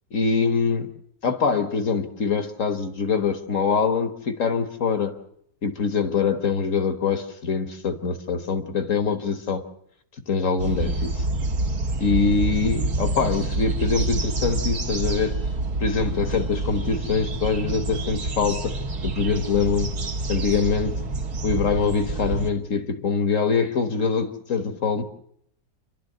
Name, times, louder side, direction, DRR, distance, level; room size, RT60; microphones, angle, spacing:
voice 1, 0.1-0.9 1.2-5.2 5.6-9.6 10.3-11.2 12.0-15.4 15.8-18.8 19.0-20.0 20.3-21.0 21.4-25.0, left 5 dB, 50° left, 1.6 m, -24 dB
sound 1, 10.6-22.5, right 2 dB, 60° right, 2.2 m, -27 dB
28.0 x 12.0 x 7.9 m
omnidirectional pair, 1.9 m